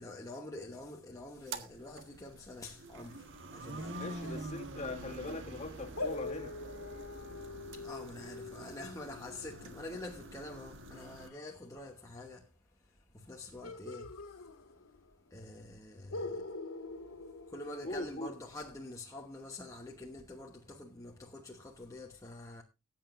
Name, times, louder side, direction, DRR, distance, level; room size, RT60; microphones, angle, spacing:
voice 1, 0.0-4.4 7.7-12.5 13.1-14.5 15.3-16.5 17.5-22.6, left 2 dB, 15° left, 1.0 m, -46 dB
sound 1, 1.3-11.3, right 2 dB, 55° right, 1.5 m, -46 dB
voice 2, 3.9-6.6 17.8-18.3, left 2 dB, 30° left, 2.0 m, -41 dB
sound 2, 6.0-11.4 13.6-15.1 15.4-15.5 16.1-18.3, left 3 dB, 85° left, 1.7 m, -44 dB
20.0 x 8.9 x 2.5 m
head